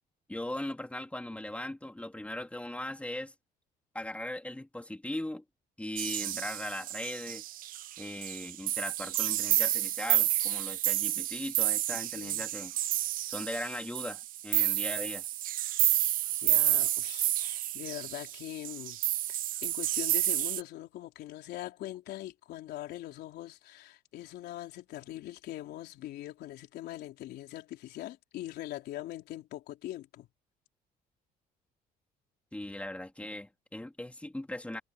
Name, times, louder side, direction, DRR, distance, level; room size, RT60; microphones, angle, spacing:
voice 1, 0.3-3.3 3.9-5.4 5.8-7.4 8.0-12.7 13.3-15.2 32.5-34.8, left 1 dB, 5° left, 3.6 m, -39 dB
sound 1, 6.0-20.6, right 14 dB, 55° right, 0.4 m, -30 dB
voice 2, 12.1-12.5 16.3-19.0 19.3-30.3, left 14 dB, 75° left, 3.9 m, -42 dB
cardioid pair, 110°, 17 cm